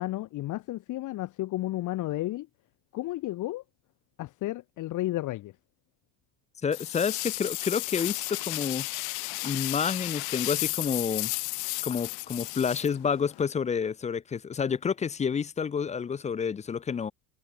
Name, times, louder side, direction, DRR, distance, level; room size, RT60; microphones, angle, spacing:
voice 1, 0.0-2.5 2.9-3.6 4.2-5.5, left 16 dB, 50° left, 1.9 m, -32 dB
voice 2, 6.6-8.9 9.4-11.3 11.8-17.1, left 6 dB, 15° left, 0.6 m, -29 dB
sound 1, 6.7-13.4, left 30 dB, 70° left, 2.1 m, -33 dB
cardioid pair, 135°, 39 cm